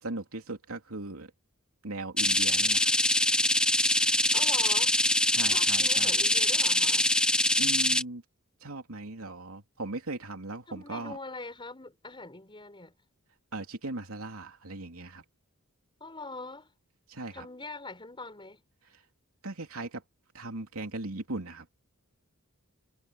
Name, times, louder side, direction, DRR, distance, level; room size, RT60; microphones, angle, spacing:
voice 1, 0.0-1.3 1.8-2.9 5.3-6.1 7.6-8.2 8.6-11.2 13.5-15.2 17.1-17.4 19.4-20.0 20.3-21.7, right 2 dB, 75° right, 3.2 m, -38 dB
sound 1, 2.2-8.0, left 1 dB, 5° left, 1.1 m, -24 dB
voice 2, 4.3-4.9 5.4-7.1 10.7-12.9 16.0-16.7 17.3-18.6, left 3 dB, 25° left, 6.2 m, -42 dB
head